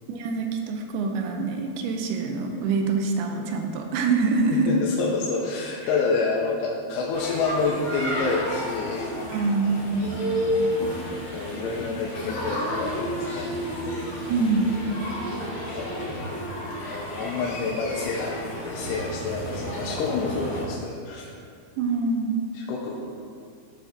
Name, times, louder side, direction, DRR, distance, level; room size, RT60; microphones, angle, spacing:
voice 1, 0.1-4.7 9.3-10.1 14.3-14.7 21.8-22.4, right 4 dB, 90° right, 4 dB, 2.5 m, -25 dB
voice 2, 4.5-9.1 11.3-13.5 15.8-16.1 16.9-18.4 18.7-21.3 22.5-23.0, left 4 dB, 90° left, -3 dB, 2.7 m, -28 dB
sound 1, 7.1-20.6, equal, 65° left, 2.4 m, -31 dB
Electric guitar, 9.9-16.3, equal, 65° right, 0.4 m, -39 dB
12.0 x 5.0 x 2.6 m, 2.3 s
omnidirectional pair, 4.4 m